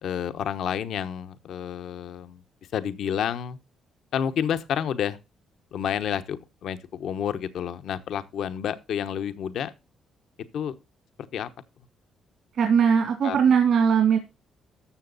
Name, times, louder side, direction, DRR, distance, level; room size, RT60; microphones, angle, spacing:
voice 1, 0.0-2.4 2.7-3.6 4.1-5.2 5.7-9.7 10.5-10.8 11.3-11.5 13.2-13.4, left 9 dB, 75° left, 1.1 m, -29 dB
voice 2, 12.6-14.2, right 7 dB, 65° right, 2.6 m, -20 dB
13.0 x 7.0 x 4.0 m
cardioid pair, 90°, 0 cm